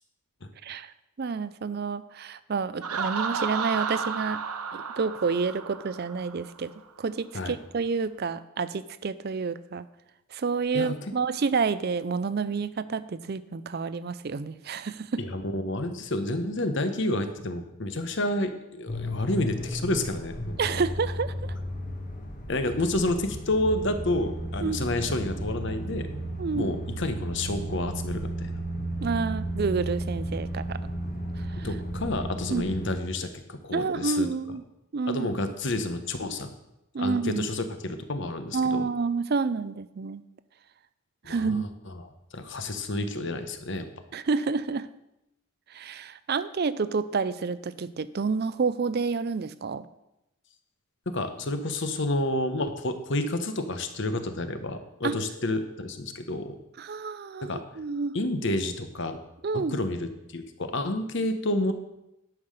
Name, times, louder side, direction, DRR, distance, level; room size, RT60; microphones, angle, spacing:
voice 1, 0.6-4.4 4.7-6.7 7.0-9.8 10.3-15.2 20.6-21.3 24.6-24.9 26.4-26.7 29.0-30.8 31.4-31.7 32.5-32.7 33.7-34.6 34.9-35.3 36.9-37.5 38.5-40.2 41.3-41.7 44.1-44.9 45.7-49.9 55.0-55.2 56.8-58.2 59.4-59.8, right 4 dB, 45° right, 15 dB, 0.4 m, -29 dB
Laughter, 2.8-6.5, right 6 dB, 85° right, 0.9 m, -32 dB
voice 2, 10.7-11.1 15.2-20.6 22.5-26.1 26.5-28.5 31.6-34.3 35.1-36.5 37.0-38.9 41.2-43.9 51.1-56.6 57.4-57.6 58.1-59.2 59.5-61.7, left 1 dB, 55° left, 8 dB, 1.0 m, -30 dB
sound 1, 18.9-32.9, right 1 dB, 40° left, 1.3 m, -34 dB
10.5 x 5.8 x 6.6 m, 0.87 s
head